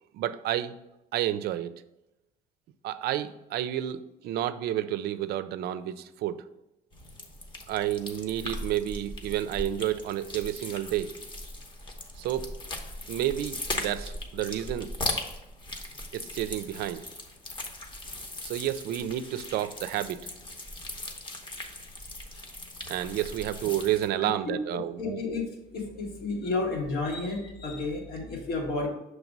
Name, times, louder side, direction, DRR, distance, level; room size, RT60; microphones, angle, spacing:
voice 1, 0.1-0.8 1.1-1.7 2.8-6.4 7.7-11.1 12.2-12.5 13.1-14.9 16.1-17.0 18.4-20.3 22.9-25.2, right 12 dB, 70° right, 13 dB, 0.4 m, -30 dB
sound 1, 6.9-24.1, left 1 dB, 30° left, 0.9 m, -39 dB
voice 2, 24.2-25.4 25.7-28.9, left 3 dB, 70° left, 0 dB, 1.6 m, -32 dB
6.1 x 3.2 x 5.2 m, 0.95 s
cardioid pair, 110°, 17 cm